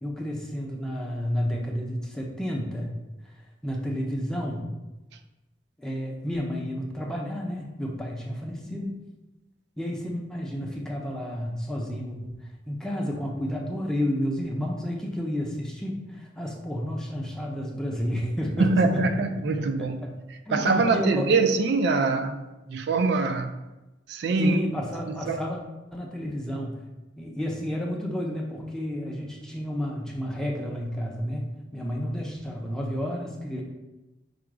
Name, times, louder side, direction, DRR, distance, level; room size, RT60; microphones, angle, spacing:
voice 1, 0.0-3.0 3.6-4.7 5.8-9.0 9.8-19.0 19.6-20.1 20.5-21.3 24.4-25.6 25.9-26.8 27.2-33.6, equal, 5° left, 0.6 m, -31 dB
voice 2, 18.6-20.0 20.5-22.4 22.7-23.5 24.1-24.6 25.1-25.4, right 3 dB, 65° right, 0.3 m, -23 dB
4.9 x 2.3 x 4.7 m
head